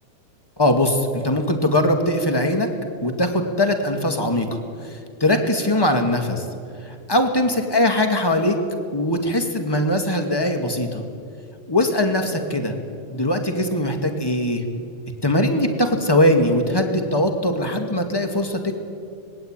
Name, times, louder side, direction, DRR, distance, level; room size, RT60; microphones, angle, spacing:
voice 1, 0.6-2.7 3.0-4.5 4.8-6.4 6.8-8.6 8.9-11.0 11.7-12.8 13.1-14.6 15.2-18.8, left 1 dB, 10° left, 5 dB, 1.6 m, -21 dB
26.0 x 20.5 x 9.1 m, 2.3 s
omnidirectional pair, 3.7 m